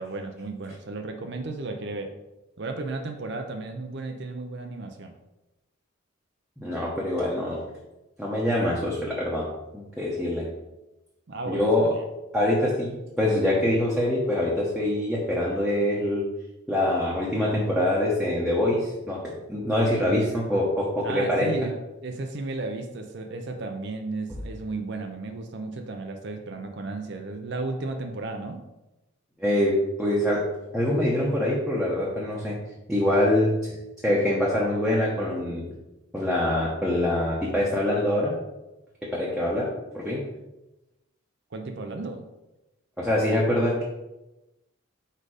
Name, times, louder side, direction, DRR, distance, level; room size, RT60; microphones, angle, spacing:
voice 1, 0.0-2.1 2.6-5.2 11.3-11.7 21.0-21.7 22.0-28.6 41.5-42.2, right 3 dB, 55° right, 5 dB, 0.5 m, -34 dB
voice 2, 6.6-7.6 8.2-9.4 9.7-10.4 11.5-11.9 12.3-16.2 16.7-21.5 29.4-30.4 30.7-32.5 32.9-33.7 34.0-35.7 36.1-38.3 39.1-39.7 39.9-40.2 43.0-43.9, left 1 dB, 5° right, -6 dB, 0.9 m, -24 dB
4.9 x 4.4 x 4.9 m, 1.0 s
head